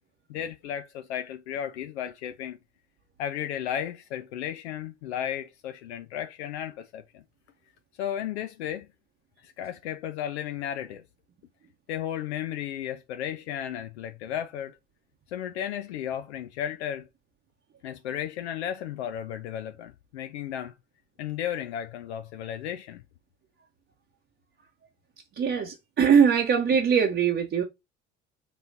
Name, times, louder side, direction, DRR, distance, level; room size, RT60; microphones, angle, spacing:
voice 1, 0.3-2.6 3.2-7.2 8.0-8.9 9.4-11.0 11.9-14.8 15.3-17.1 17.8-20.7 21.2-23.0, left 10 dB, 70° left, 0.5 m, -34 dB
voice 2, 25.4-27.6, right 7 dB, 35° right, 0.9 m, -22 dB
5.3 x 3.0 x 2.7 m
figure-of-eight pair, 55°, 34 cm